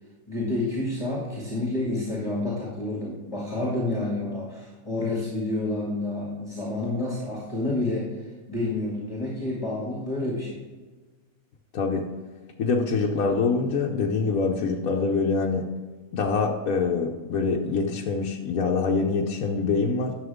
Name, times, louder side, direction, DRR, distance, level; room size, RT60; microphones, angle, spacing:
voice 1, 0.3-8.2 8.5-10.6, left 2 dB, 25° left, -4 dB, 2.0 m, -29 dB
voice 2, 12.6-15.6 16.1-20.1, left 4 dB, 75° left, -1 dB, 1.2 m, -25 dB
11.5 x 6.8 x 3.6 m, 1.3 s
omnidirectional pair, 1.5 m